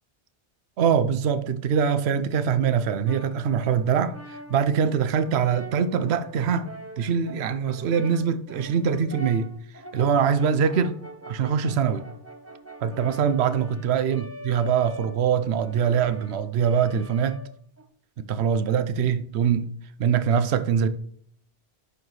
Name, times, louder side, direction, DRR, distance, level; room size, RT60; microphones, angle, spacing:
voice 1, 0.8-4.2 4.5-9.5 9.9-11.0 11.3-12.0 12.8-17.4 18.2-19.7 20.0-20.9, right 7 dB, 70° right, 0.9 m, -23 dB
Brass instrument, 3.1-17.9, right 1 dB, 15° right, 0.8 m, -43 dB
10.5 x 4.8 x 3.1 m
omnidirectional pair, 1.1 m